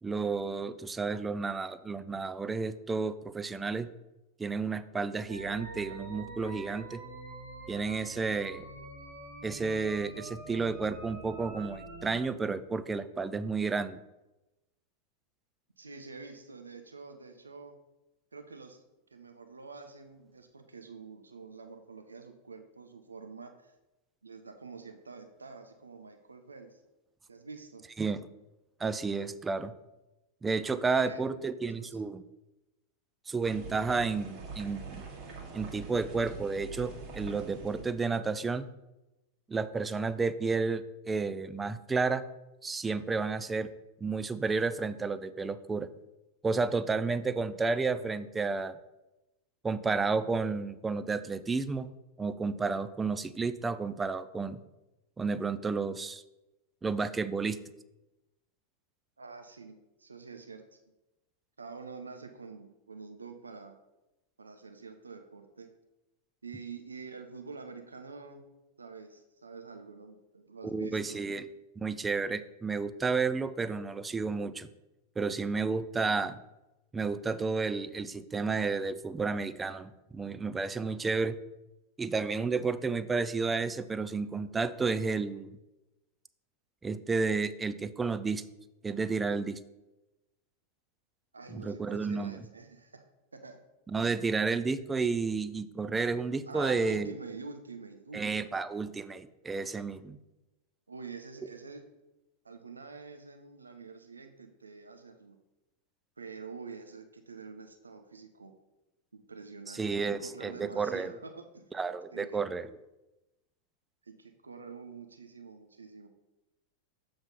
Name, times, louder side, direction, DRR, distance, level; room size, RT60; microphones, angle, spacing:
voice 1, 0.0-3.9 4.4-7.0 7.7-8.6 9.4-14.0 28.0-28.2 28.8-29.7 30.4-32.2 33.3-35.0 35.5-38.7 39.5-42.2 42.6-43.7 44.0-45.9 46.4-48.8 49.6-51.9 52.2-54.6 55.2-56.2 56.8-57.6 70.6-71.5 71.8-74.7 75.2-76.4 76.9-81.4 82.0-85.5 86.8-88.4 88.8-89.6 91.5-92.5 93.9-97.1 98.1-100.2 109.7-111.1 111.7-112.7, right 4 dB, 15° right, 13 dB, 0.3 m, -31 dB
sound 1, 5.3-12.2, right 3 dB, 60° right, 1.9 m, -45 dB
voice 2, 15.8-17.8 18.3-18.8 19.1-23.7 24.2-26.8 27.3-27.8 30.7-31.2 31.8-32.0 59.2-60.8 61.6-63.8 64.4-65.7 66.4-68.4 68.8-71.2 91.3-93.0 93.3-93.6 96.5-98.6 100.9-101.9 102.4-105.4 106.2-108.5 109.1-111.6 112.1-112.4 114.0-116.1, right 4 dB, 75° right, 6 dB, 0.6 m, -47 dB
sound 2, 33.4-38.0, right 4 dB, 40° right, 1.7 m, -44 dB
7.3 x 3.5 x 5.4 m, 0.99 s
figure-of-eight pair, 90°, 0 cm